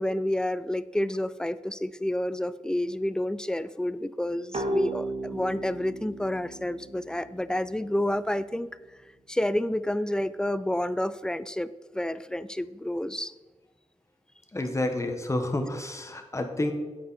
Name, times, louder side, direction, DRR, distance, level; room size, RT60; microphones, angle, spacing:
voice 1, 0.0-8.7 9.3-13.3, left 1 dB, 5° left, 16 dB, 0.4 m, -29 dB
sound 1, 4.5-8.0, right 1 dB, 60° right, 1.4 m, -34 dB
voice 2, 14.5-16.7, left 1 dB, 25° left, 5 dB, 1.4 m, -29 dB
9.3 x 8.5 x 4.2 m, 1.2 s
wide cardioid pair, 80°, 13 cm